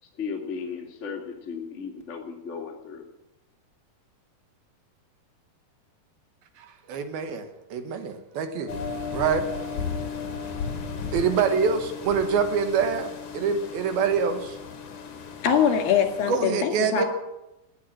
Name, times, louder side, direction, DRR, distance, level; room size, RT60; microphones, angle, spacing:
voice 1, 0.0-3.1, left 5 dB, 25° left, 0 dB, 1.6 m, -35 dB
voice 2, 6.9-8.7 9.1-9.4 11.1-14.6 16.3-17.1, right 6 dB, 75° right, 8 dB, 3.0 m, -25 dB
sound 1, 8.7-16.4, left 5 dB, 55° left, 3.2 m, -35 dB
voice 3, 15.4-17.1, left 8 dB, 70° left, 6 dB, 3.8 m, -22 dB
18.0 x 9.5 x 7.4 m, 0.94 s
omnidirectional pair, 4.4 m